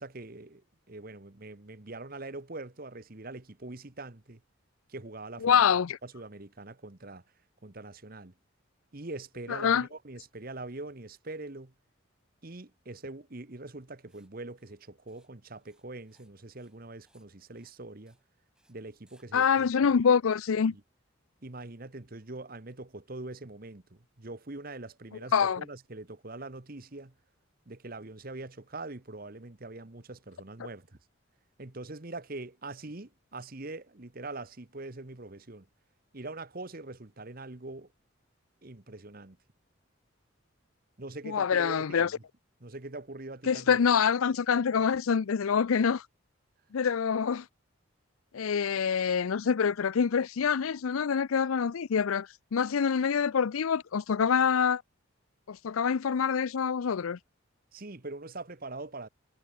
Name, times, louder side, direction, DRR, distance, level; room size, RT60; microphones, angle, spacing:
voice 1, 0.0-4.4 4.9-5.6 6.0-7.2 7.6-8.3 8.9-11.7 12.4-18.2 18.7-19.5 20.7-20.8 21.4-27.1 27.7-31.0 31.6-35.7 36.1-37.9 38.6-39.4 41.0-42.2 42.6-43.8 57.7-59.1, right 2 dB, 45° right, 1.3 m, -43 dB
voice 2, 5.4-6.0 9.5-9.9 19.3-20.7 25.3-25.6 41.2-42.1 43.5-46.0 46.7-47.5 48.3-54.8 55.5-57.2, left 6 dB, 85° left, 0.5 m, -26 dB
Writing, 14.1-14.3 14.6-14.8 15.1-15.3 15.6-16.3 16.6-16.8 17.1-17.3 17.6-17.8 18.1-18.2 18.6-18.7 19.1-19.3, right 1 dB, 5° right, 7.5 m, -70 dB
head